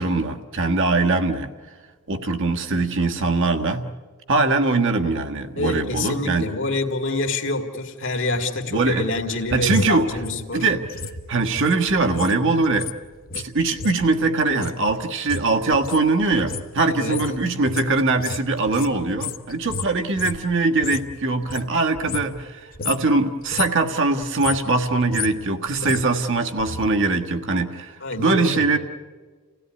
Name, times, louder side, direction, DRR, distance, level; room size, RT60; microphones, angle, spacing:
voice 1, 0.0-1.5 2.1-3.9 4.3-6.5 8.7-9.0 9.5-10.1 10.5-10.8 11.3-12.9 13.3-28.8, right 3 dB, 60° right, 5 dB, 1.5 m, -22 dB
voice 2, 5.6-10.7 16.9-17.2 28.0-28.7, left 2 dB, 55° left, 5 dB, 2.2 m, -26 dB
sound 1, 8.8-12.4 12.6-21.1 21.4-22.5 22.7-23.1 23.4-23.9 24.2-26.9 27.2-27.3, left 4 dB, 40° left, 1.0 m, -33 dB
29.5 x 16.5 x 9.7 m, 1.5 s
head